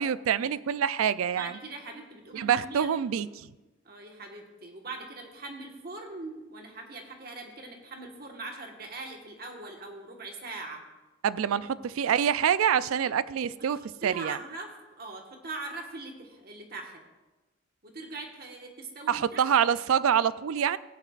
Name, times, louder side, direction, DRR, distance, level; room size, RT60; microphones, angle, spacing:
voice 1, 0.0-1.5 2.3-3.5 11.2-14.4 19.1-20.8, right 8 dB, 85° right, 17 dB, 0.4 m, -26 dB
voice 2, 1.3-3.2 3.8-10.8 13.0-13.2 13.4-17.0 17.8-19.4, right 3 dB, 45° right, 2 dB, 1.4 m, -42 dB
16.0 x 10.0 x 2.5 m, 1.1 s
head